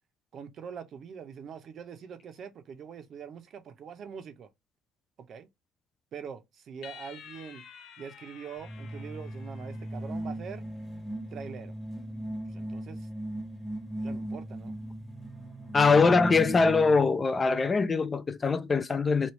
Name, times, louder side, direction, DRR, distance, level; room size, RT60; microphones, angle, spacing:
voice 1, 0.3-4.5 5.2-5.5 6.1-7.6 8.0-10.6 11.3-11.7 12.5-13.1 14.0-14.8, right 7 dB, 50° right, 0.6 m, -43 dB
sound 1, 6.8-10.4, left 8 dB, 55° left, 0.6 m, -51 dB
sound 2, 8.6-17.2, right 1 dB, ahead, 0.9 m, -38 dB
voice 2, 15.7-19.3, left 4 dB, 25° left, 0.3 m, -23 dB
3.1 x 2.4 x 3.0 m
cardioid pair, 115°, 0 cm